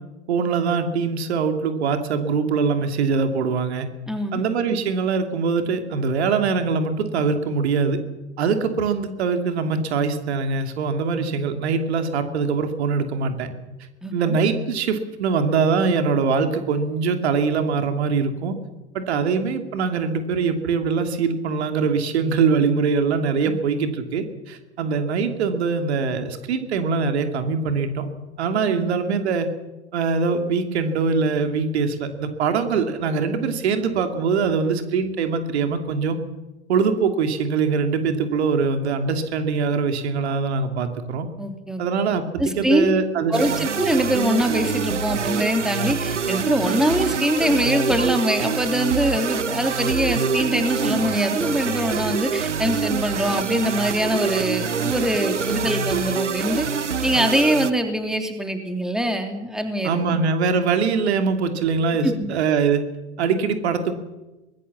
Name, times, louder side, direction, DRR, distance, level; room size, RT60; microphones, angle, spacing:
voice 1, 0.3-3.9 4.3-8.0 8.4-13.5 14.1-18.6 18.9-28.1 28.4-29.5 29.9-36.2 36.7-41.3 41.8-43.4 59.8-62.8 63.2-63.9, right 5 dB, 65° right, 7 dB, 2.9 m, -23 dB
voice 2, 4.1-4.4 14.0-14.4 23.5-23.6 28.7-28.9 41.4-41.8 42.4-42.9 43.3-56.7 57.0-60.1 62.0-62.3, equal, ahead, 5 dB, 3.3 m, -23 dB
sound 1, 43.3-57.7, right 6 dB, 90° right, 1.1 m, -25 dB
24.5 x 20.0 x 7.3 m, 1.0 s
figure-of-eight pair, 90°, 35 cm